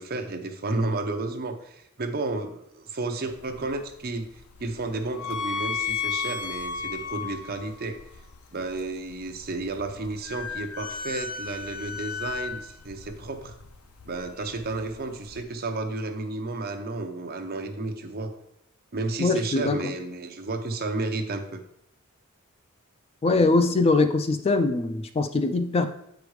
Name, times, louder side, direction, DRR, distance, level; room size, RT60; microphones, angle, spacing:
voice 1, 0.0-4.3 4.6-8.0 8.5-13.5 14.0-18.3 18.9-21.6, right 2 dB, 45° right, 5 dB, 0.7 m, -32 dB
sound 1, 3.3-15.4, left 6 dB, 75° left, 0.6 m, -35 dB
voice 2, 19.2-19.8 23.2-25.9, left 3 dB, 25° left, 8 dB, 0.3 m, -22 dB
7.9 x 5.1 x 3.2 m, 0.76 s
head